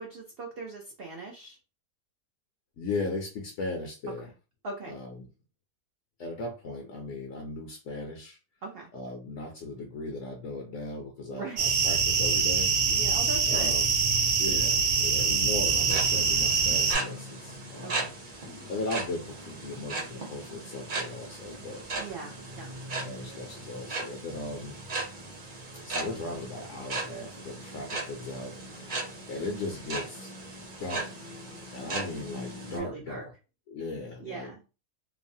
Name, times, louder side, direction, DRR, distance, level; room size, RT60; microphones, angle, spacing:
voice 1, 0.0-1.6 4.6-4.9 8.6-8.9 11.3-11.6 12.9-13.7 17.8-18.1 22.0-22.7 32.7-33.2 34.2-34.6, right 3 dB, 85° right, 0 dB, 0.5 m, -40 dB
voice 2, 2.8-4.3 4.9-5.3 6.2-8.4 8.9-12.7 13.5-13.9 14.4-18.1 18.5-21.8 23.0-24.7 25.8-30.3 30.8-31.3 31.7-33.3 33.7-34.5, left 2 dB, 65° left, 1 dB, 0.8 m, -37 dB
sound 1, 11.6-17.0, right 5 dB, 70° right, 0.9 m, -24 dB
sound 2, 15.7-32.8, right 2 dB, 45° right, 0.7 m, -37 dB
3.0 x 2.0 x 2.6 m, 0.31 s
omnidirectional pair, 1.7 m